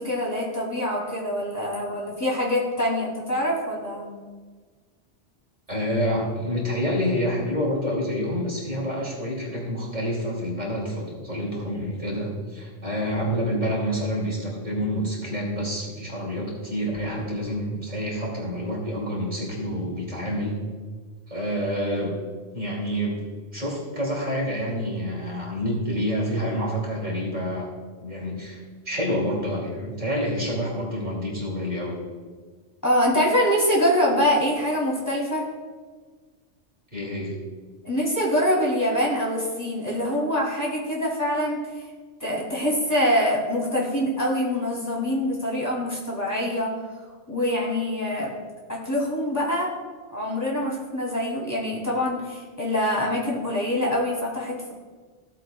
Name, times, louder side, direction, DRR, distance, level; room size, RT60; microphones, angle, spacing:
voice 1, 0.0-4.1 32.8-35.5 37.8-41.7 42.2-46.7 47.3-48.3 48.7-49.7 50.1-54.7, equal, 15° left, -5 dB, 2.8 m, -24 dB
voice 2, 5.7-20.5 21.3-22.1 22.5-23.2 23.5-27.7 28.0-32.0 36.9-37.3, equal, 35° right, -3 dB, 2.8 m, -28 dB
16.0 x 7.6 x 2.3 m, 1.5 s
omnidirectional pair, 1.2 m